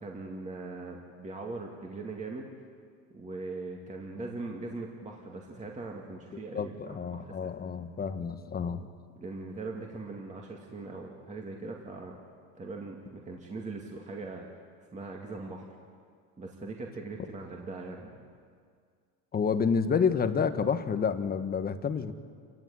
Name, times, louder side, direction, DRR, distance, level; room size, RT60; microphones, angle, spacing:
voice 1, 0.0-2.5 3.1-7.3 8.6-8.7 9.2-12.2 12.6-14.5 14.9-15.7 16.4-18.2, right 3 dB, 20° right, 0 dB, 2.4 m, -40 dB
voice 2, 6.5-8.9 19.3-22.1, left 6 dB, 25° left, 9 dB, 1.3 m, -29 dB
28.0 x 16.0 x 9.6 m, 2.1 s
cardioid pair, 135°, 37 cm